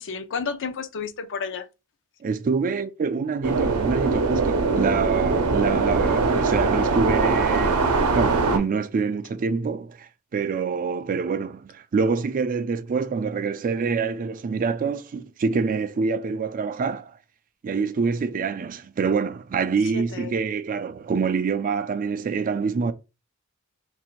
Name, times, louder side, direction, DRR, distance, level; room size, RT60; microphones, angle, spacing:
voice 1, 0.0-1.7 19.9-20.3, left 5 dB, 60° left, 0.5 m, -31 dB
voice 2, 2.2-17.2 17.6-22.9, right 5 dB, 40° right, 0.3 m, -26 dB
sound 1, 3.4-8.6, right 3 dB, 80° right, 0.7 m, -22 dB
3.1 x 2.6 x 4.4 m
head